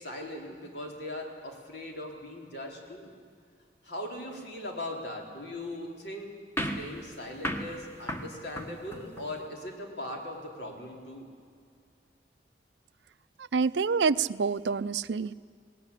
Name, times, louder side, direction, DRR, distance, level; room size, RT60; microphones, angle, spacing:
voice 1, 0.0-3.1 3.8-6.3 6.6-11.3, left 1 dB, 65° left, 1 dB, 4.0 m, -39 dB
sound 1, 6.6-9.4, equal, 15° left, 1.4 m, -36 dB
voice 2, 13.5-15.3, right 5 dB, 80° right, 15 dB, 0.5 m, -27 dB
20.0 x 18.5 x 10.0 m, 2.2 s
head